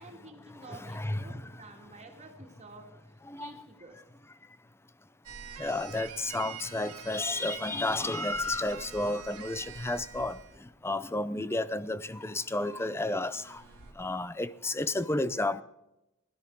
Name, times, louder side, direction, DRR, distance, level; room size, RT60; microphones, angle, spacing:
voice 1, 0.0-4.0, right 2 dB, 30° right, 2.1 m, -51 dB
voice 2, 0.6-1.6 3.3-3.5 4.4-4.6 5.6-15.6, left 2 dB, 10° left, 0.5 m, -32 dB
sound 1, 5.2-10.6 12.1-13.9, right 7 dB, 80° right, 1.6 m, -46 dB
16.0 x 13.0 x 4.6 m
head